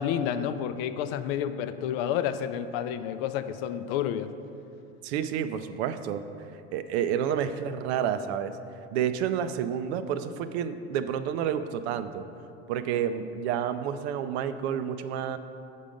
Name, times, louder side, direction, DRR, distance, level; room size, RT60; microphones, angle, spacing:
voice 1, 0.0-4.3, left 9 dB, 60° left, 11 dB, 0.5 m, -30 dB
voice 2, 5.0-6.2 6.7-8.6 8.9-12.2 12.7-15.4, right 9 dB, 70° right, 11 dB, 0.5 m, -29 dB
7.2 x 3.9 x 5.0 m, 2.6 s
hypercardioid pair, 100°, 34 cm